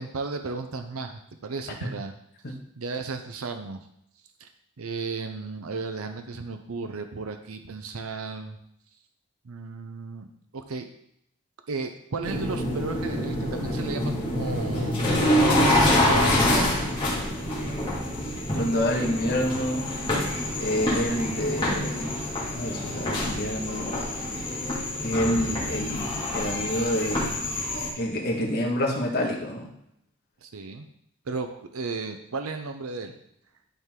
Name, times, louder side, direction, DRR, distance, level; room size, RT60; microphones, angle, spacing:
voice 1, 0.0-2.1 2.8-3.8 4.4-4.5 4.8-8.6 9.4-10.3 10.5-10.9 11.7-15.1 15.7-16.8 30.4-30.9 31.3-33.1, right 4 dB, 90° right, 7 dB, 0.7 m, -34 dB
sound 1, 12.2-27.9, left 1 dB, 25° left, 2.2 m, -26 dB
voice 2, 18.5-20.0 20.6-22.2 22.5-24.0 25.0-27.4 27.9-29.7, equal, 50° left, -1 dB, 1.7 m, -28 dB
11.5 x 4.6 x 3.8 m, 0.73 s
head